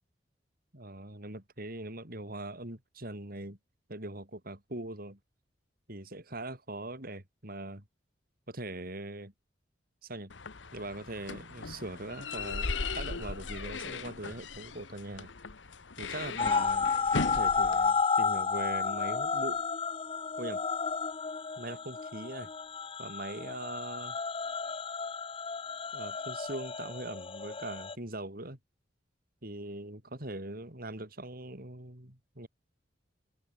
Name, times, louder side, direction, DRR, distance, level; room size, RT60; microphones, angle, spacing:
voice 1, 0.7-3.6 3.9-5.2 5.9-7.8 8.5-9.3 10.0-10.3 10.7-12.7 12.9-15.3 16.0-16.9 17.3-19.6 20.4-20.6 21.6-22.5 23.0-24.2 25.9-28.6 29.4-32.5, right 2 dB, 50° right, 5.0 m, -41 dB
sound 1, 10.3-17.9, left 4 dB, 75° left, 1.3 m, -38 dB
sound 2, 16.4-27.9, left 5 dB, 30° left, 0.7 m, -32 dB
head